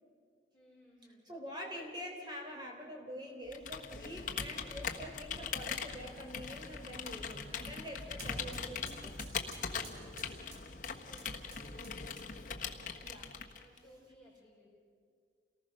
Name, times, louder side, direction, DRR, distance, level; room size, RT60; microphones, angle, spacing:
voice 1, 0.5-1.3 11.0-12.1 13.2-14.7, equal, 5° right, -8 dB, 5.5 m, -61 dB
voice 2, 1.3-9.2 13.0-13.6, equal, 25° right, 1 dB, 3.7 m, -46 dB
Computer keyboard, 3.5-13.8, left 6 dB, 50° left, 1.3 m, -41 dB
sound 1, 5.9-12.6, equal, 65° right, 5.5 m, -53 dB
28.5 x 19.0 x 6.5 m, 2.1 s
head